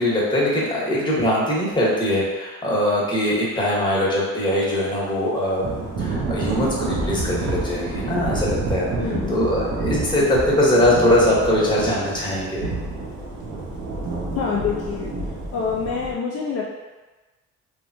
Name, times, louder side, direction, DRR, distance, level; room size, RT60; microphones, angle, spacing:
voice 1, 0.0-5.6 6.0-8.9 9.3-12.7, left 1 dB, 15° left, -6 dB, 1.0 m, -21 dB
Thunder / Rain, 5.6-16.1, right 2 dB, 65° right, 0.7 m, -28 dB
voice 2, 8.9-9.4 14.4-15.1 15.5-16.7, left 6 dB, 55° left, -4 dB, 0.4 m, -26 dB
3.2 x 2.1 x 2.5 m, 1.2 s
cardioid pair, 90°, 30 cm